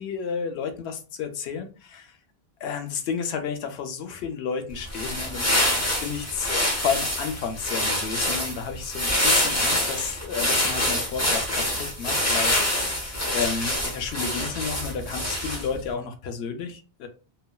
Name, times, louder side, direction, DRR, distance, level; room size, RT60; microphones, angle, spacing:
voice 1, 0.0-2.1 2.6-17.1, left 6 dB, 80° left, 6 dB, 0.8 m, -32 dB
sound 1, 4.8-15.8, left 1 dB, 15° left, 0.7 m, -26 dB
3.2 x 2.0 x 2.2 m, 0.34 s
omnidirectional pair, 1.1 m